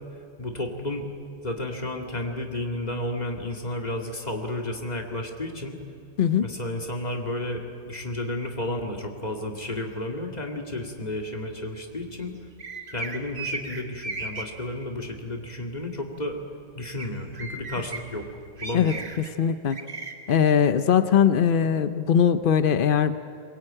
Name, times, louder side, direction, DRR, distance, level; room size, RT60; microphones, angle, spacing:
voice 1, 0.4-1.1 1.4-5.8 6.4-12.4 12.9-16.4 16.8-18.2 18.6-19.0, left 1 dB, 25° left, 2 dB, 2.3 m, -32 dB
sound 1, 12.6-14.4 17.0-17.1 17.3-18.0 18.6-19.3 19.7-20.1, right 3 dB, 40° right, 1.9 m, -35 dB
voice 2, 19.4-19.8 20.3-23.2, left 8 dB, 70° left, 11 dB, 0.5 m, -20 dB
22.5 x 22.0 x 8.9 m, 2.4 s
omnidirectional pair, 1.8 m